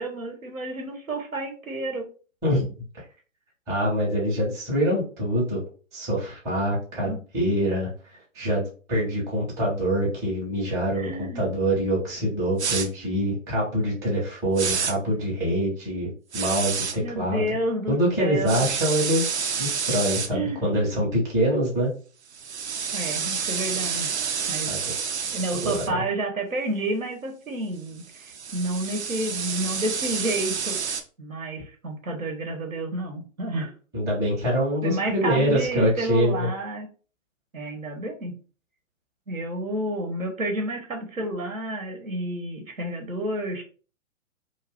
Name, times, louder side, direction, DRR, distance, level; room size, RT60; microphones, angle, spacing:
voice 1, 0.0-2.1 7.0-7.2 10.9-11.4 17.0-18.6 20.3-20.6 22.9-24.2 24.5-24.7 25.3-33.7 34.8-36.9 37.5-38.3 39.3-43.6, right 1 dB, 85° right, 4 dB, 1.0 m, -30 dB
voice 2, 3.7-5.6 5.9-17.6 17.9-21.9 24.7-24.8 25.6-26.0 33.9-36.5, equal, 10° right, -6 dB, 0.6 m, -25 dB
sound 1, 12.6-12.9 14.6-14.9 16.3-16.9 18.5-20.3 22.3-25.9 28.0-31.0, right 6 dB, 55° right, 0.6 m, -29 dB
2.5 x 2.3 x 3.3 m, 0.38 s
figure-of-eight pair, 130°, 40 cm